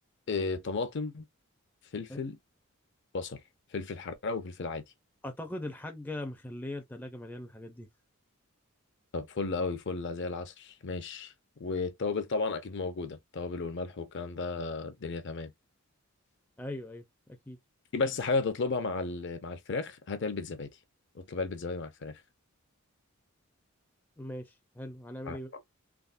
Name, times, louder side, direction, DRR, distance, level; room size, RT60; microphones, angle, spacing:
voice 1, 0.3-1.2 1.9-2.4 3.1-3.4 3.7-4.8 9.1-11.3 11.6-15.5 17.9-20.7 21.1-22.2 25.3-25.4, left 3 dB, 55° left, 0.6 m, -33 dB
voice 2, 5.2-7.9 16.6-17.1 17.5-17.6 24.2-25.5, left 1 dB, 10° left, 0.4 m, -40 dB
3.5 x 2.1 x 2.4 m
head